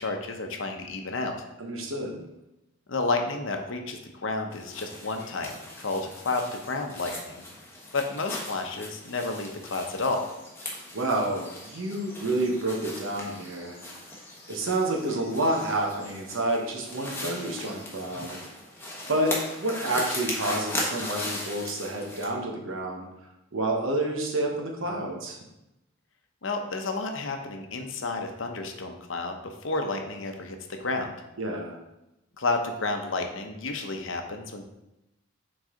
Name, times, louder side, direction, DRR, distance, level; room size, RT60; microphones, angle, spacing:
voice 1, 0.0-1.4 2.9-5.5 5.8-7.4 7.9-10.3 26.4-31.1 32.4-34.6, left 3 dB, 65° left, 4 dB, 0.8 m, -31 dB
voice 2, 1.6-2.2 10.9-13.8 14.5-18.4 19.1-23.1 23.5-25.4 31.4-31.8, right 1 dB, 70° right, 1 dB, 1.1 m, -29 dB
sound 1, 4.5-22.2, left 1 dB, 10° left, 1.1 m, -38 dB
6.3 x 4.0 x 3.8 m, 0.92 s
head